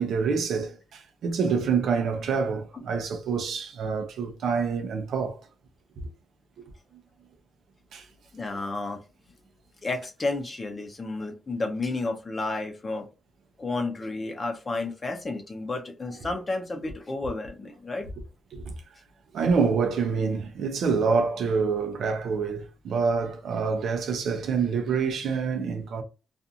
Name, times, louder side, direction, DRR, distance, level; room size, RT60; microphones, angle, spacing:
voice 1, 0.0-5.4 7.9-8.0 18.5-18.7 19.3-26.0, right 5 dB, 70° right, 0.6 m, -26 dB
voice 2, 8.3-9.0 9.8-13.1 13.6-18.1, left 3 dB, 25° left, 0.7 m, -31 dB
2.5 x 2.4 x 2.8 m
cardioid pair, 120°, 0 cm